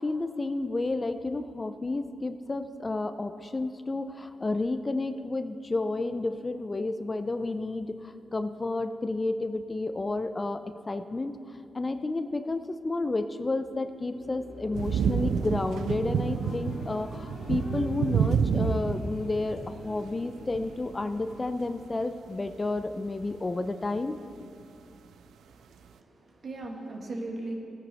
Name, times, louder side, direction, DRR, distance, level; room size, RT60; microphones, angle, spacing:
voice 1, 0.0-24.2, left 2 dB, 30° left, 9 dB, 0.5 m, -31 dB
sound 1, 13.7-22.3, left 1 dB, 75° left, 1.8 m, -45 dB
sound 2, 14.7-20.9 21.2-21.6 22.0-22.1 22.6-22.7 23.2-23.4 24.0-24.1, right 7 dB, 90° right, 0.3 m, -29 dB
voice 2, 25.4-27.5, right 2 dB, 60° right, 0 dB, 1.8 m, -39 dB
16.5 x 9.4 x 3.5 m, 2.5 s
cardioid pair, 75°, 0 cm